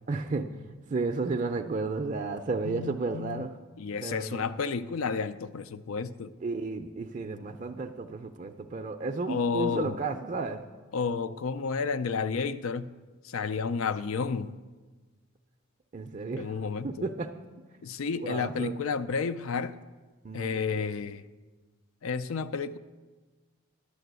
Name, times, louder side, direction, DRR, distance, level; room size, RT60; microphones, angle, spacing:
voice 1, 0.1-3.5 4.0-4.4 6.4-10.6 15.9-17.3 17.7-17.8 18.2-18.7 20.2-20.9, right 3 dB, 35° right, 0.4 m, -33 dB
voice 2, 2.6-3.5 3.8-6.3 9.3-10.0 10.9-12.9 13.2-14.6 16.4-16.9 17.8-19.8 20.3-21.3 22.0-22.8, left 5 dB, 75° left, 0.4 m, -31 dB
11.5 x 6.8 x 8.0 m
head